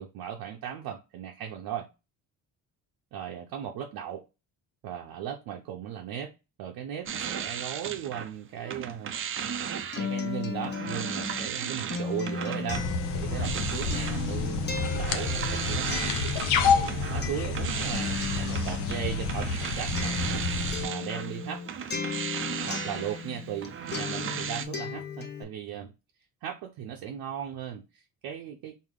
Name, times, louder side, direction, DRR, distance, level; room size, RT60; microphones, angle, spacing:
voice 1, 0.0-1.9 3.1-4.2 4.8-6.3 6.6-9.1 10.0-12.9 13.1-16.1 16.6-20.2 20.8-21.6 22.7-25.9 26.4-28.8, right 9 dB, 65° right, 0.7 m, -37 dB
sound 1, 7.1-8.3 8.6-24.7, right 7 dB, 35° right, 0.4 m, -36 dB
Acoustic guitar, 9.4-23.7 23.9-25.4, left 5 dB, 25° left, 0.8 m, -36 dB
sound 2, 12.7-20.8, left 4 dB, 85° left, 0.6 m, -29 dB
3.6 x 2.0 x 3.6 m
supercardioid pair, 65°, 39 cm